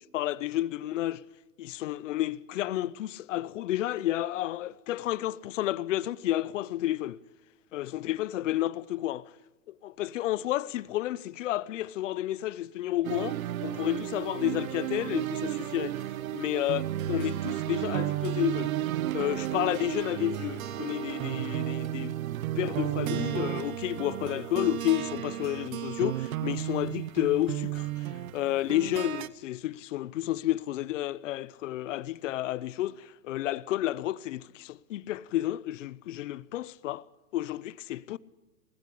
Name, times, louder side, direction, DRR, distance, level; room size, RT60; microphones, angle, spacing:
voice 1, 0.1-1.2 1.6-7.2 7.7-9.2 9.8-13.4 13.6-16.0 16.3-16.8 17.1-18.8 19.1-22.1 22.6-28.0 28.3-37.0 37.3-38.2, left 14 dB, 60° left, 0.8 m, -31 dB
sound 1, 13.0-29.3, right 13 dB, 70° right, 1.0 m, -33 dB
19.0 x 16.0 x 8.4 m
supercardioid pair, 155°, 43 cm